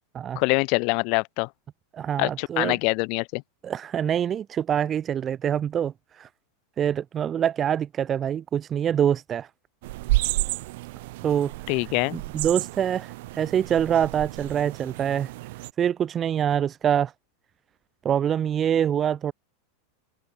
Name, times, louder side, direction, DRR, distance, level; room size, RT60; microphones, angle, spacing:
voice 1, 0.4-1.5 2.2-3.4 11.7-12.2, left 34 dB, 40° left, 0.9 m, -24 dB
voice 2, 1.9-2.8 3.6-6.3 6.8-9.5 11.2-11.5 12.1-15.3 15.8-17.1 18.0-19.3, right 9 dB, 20° right, 3.5 m, -25 dB
sound 1, 9.8-15.7, right 19 dB, 55° right, 3.1 m, -31 dB
supercardioid pair, 170°, 0 cm